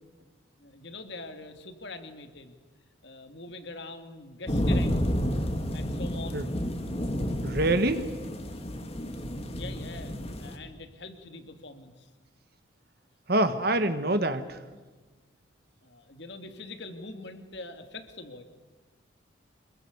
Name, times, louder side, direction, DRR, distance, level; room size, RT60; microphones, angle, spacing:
voice 1, 0.6-2.6 3.0-5.2 5.7-6.5 9.5-12.1 15.8-18.4, left 3 dB, 60° left, 8 dB, 2.6 m, -43 dB
sound 1, 4.5-10.6, equal, 30° left, 2.2 m, -30 dB
voice 2, 7.4-8.1 13.3-14.6, right 1 dB, 50° right, 10 dB, 1.5 m, -25 dB
26.0 x 22.5 x 8.1 m, 1.3 s
head